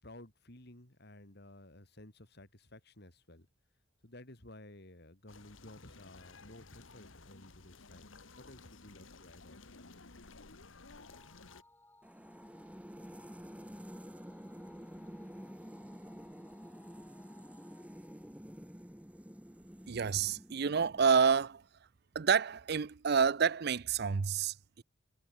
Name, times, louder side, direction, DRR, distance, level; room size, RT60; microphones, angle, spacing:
voice 1, 0.0-3.5 4.0-9.6, left 1 dB, 55° left, 3.9 m, -54 dB
sound 1, 5.3-11.6, left 3 dB, 80° left, 1.9 m, -55 dB
sound 2, 11.0-19.6, left 2 dB, 10° left, 7.7 m, -63 dB
sound 3, 12.0-21.4, equal, 5° right, 1.7 m, -50 dB
voice 2, 19.9-21.6 22.1-24.8, right 6 dB, 55° right, 0.5 m, -29 dB
head